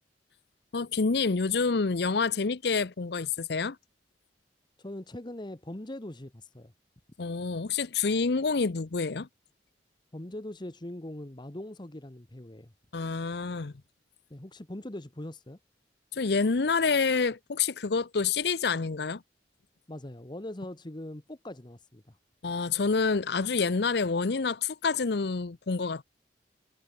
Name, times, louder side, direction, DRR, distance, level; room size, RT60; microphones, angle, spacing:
voice 1, 0.7-3.8 7.2-9.3 12.9-13.7 16.1-19.2 22.4-26.0, left 4 dB, 65° left, 0.7 m, -27 dB
voice 2, 4.8-6.7 10.1-12.7 14.3-15.6 19.9-22.2, left 1 dB, 25° left, 1.2 m, -41 dB
head